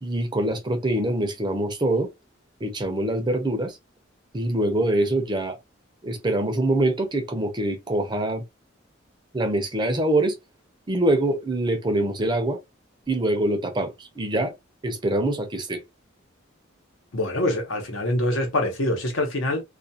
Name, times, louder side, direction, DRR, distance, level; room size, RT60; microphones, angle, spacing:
voice 1, 0.0-2.1 2.6-3.8 4.3-5.6 6.0-8.4 9.3-10.4 10.9-12.6 13.1-14.5 14.8-15.8, right 1 dB, 20° right, 0.5 m, -24 dB
voice 2, 17.1-19.6, left 1 dB, 80° left, 1.0 m, -25 dB
2.4 x 2.3 x 2.7 m
head